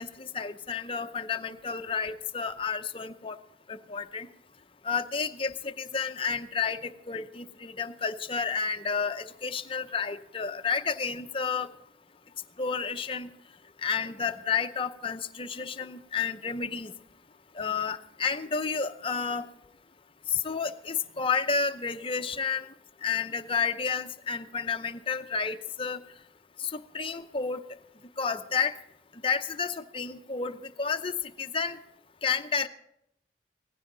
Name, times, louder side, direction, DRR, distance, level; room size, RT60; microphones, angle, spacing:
voice 1, 0.0-3.4 3.7-4.3 4.8-11.7 12.6-13.3 13.8-16.9 17.6-19.5 20.3-22.7 23.0-26.0 26.6-27.6 28.2-28.7 29.2-31.8 32.2-32.7, left 5 dB, 30° left, 7 dB, 0.7 m, -31 dB
18.0 x 15.5 x 3.9 m, 0.79 s
head